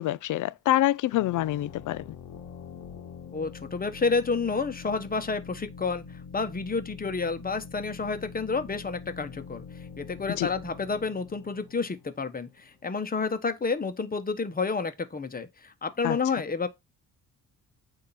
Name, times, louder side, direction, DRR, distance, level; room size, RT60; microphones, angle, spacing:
voice 1, 0.0-2.0 10.4-10.5 16.0-16.2, left 14 dB, 65° left, 0.4 m, -26 dB
sound 1, 1.1-12.6, left 6 dB, 85° left, 1.2 m, -45 dB
voice 2, 3.3-6.0 6.3-9.6 10.0-16.7, left 4 dB, 25° left, 1.2 m, -30 dB
8.6 x 3.0 x 5.7 m
cardioid pair, 85°, 33 cm